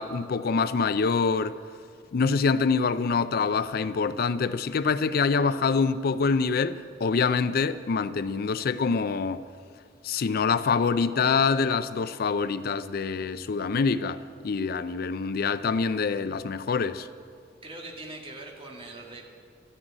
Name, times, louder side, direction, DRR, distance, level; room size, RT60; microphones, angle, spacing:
voice 1, 0.0-1.6 2.1-9.4 10.0-17.1, left 5 dB, 55° left, 0.4 m, -25 dB
voice 2, 17.6-19.3, right 2 dB, 30° right, 2.2 m, -41 dB
13.0 x 10.0 x 8.9 m
head